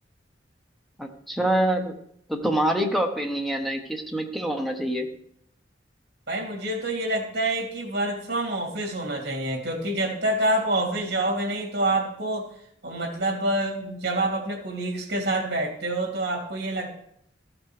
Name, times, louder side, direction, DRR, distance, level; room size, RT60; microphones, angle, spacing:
voice 1, 1.0-2.0 2.3-5.1, right 1 dB, ahead, 3 dB, 0.9 m, -26 dB
voice 2, 6.3-12.5 12.8-17.0, right 1 dB, 65° right, 1 dB, 2.6 m, -27 dB
14.0 x 5.8 x 3.3 m, 0.69 s
head